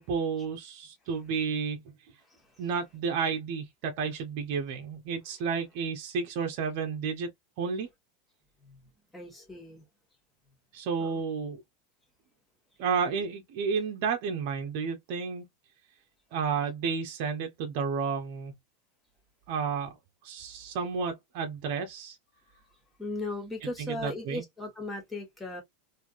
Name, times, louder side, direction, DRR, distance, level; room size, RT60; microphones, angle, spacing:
voice 1, 0.0-1.8 2.6-7.3 7.6-7.9 10.7-11.6 12.8-15.5 16.3-18.5 19.5-20.0 20.2-22.2 23.8-24.4, right 5 dB, 50° right, 0.7 m, -31 dB
voice 2, 9.1-9.8 11.0-11.2 23.0-25.6, left 2 dB, 5° left, 1.3 m, -37 dB
3.2 x 2.6 x 2.4 m
supercardioid pair, 155°, 0 cm